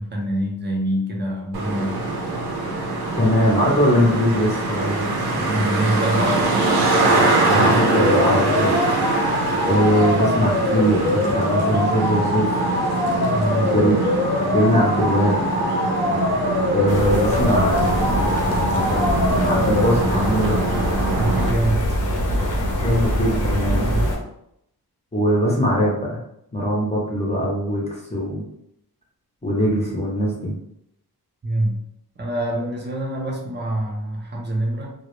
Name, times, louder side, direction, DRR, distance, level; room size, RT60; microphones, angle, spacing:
voice 1, 0.0-2.0 5.5-6.5 13.3-13.7 21.2-21.8 22.4-22.5 23.8-24.1 31.4-31.8 32.2-34.9, right 1 dB, 30° right, -1 dB, 0.6 m, -25 dB
Traffic noise roadway noise, 1.5-21.5, right 2 dB, 75° right, 0.6 m, -23 dB
voice 2, 3.1-5.8 7.4-8.9 9.6-12.7 13.6-14.0 14.5-15.4 16.7-18.4 18.7-20.6 22.8-23.9 25.1-26.2 26.5-28.4 29.4-30.6, equal, 15° left, -4 dB, 0.6 m, -21 dB
sound 1, 7.9-19.9, left 2 dB, 85° left, 0.7 m, -24 dB
sound 2, 16.9-24.2, equal, 55° left, 0.7 m, -24 dB
2.1 x 2.0 x 2.9 m, 0.76 s
wide cardioid pair, 90°, 38 cm